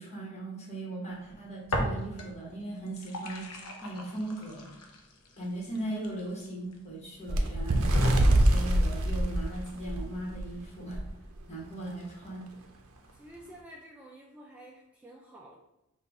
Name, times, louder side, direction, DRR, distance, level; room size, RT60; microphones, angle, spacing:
voice 1, 0.0-4.9 5.4-11.0 11.5-12.4, right 1 dB, 30° left, -3 dB, 1.3 m, -38 dB
sound 1, 1.7-2.5 2.8-6.7 7.3-7.4 7.9-8.8, equal, 85° left, 0.8 m, -34 dB
Bird, 7.3-10.5 10.9-11.1 11.4-11.6 12.4-12.5, right 1 dB, 65° right, 0.6 m, -25 dB
voice 2, 13.2-15.5, right 1 dB, 5° right, -2 dB, 0.4 m, -50 dB
5.7 x 2.4 x 3.5 m, 0.88 s
head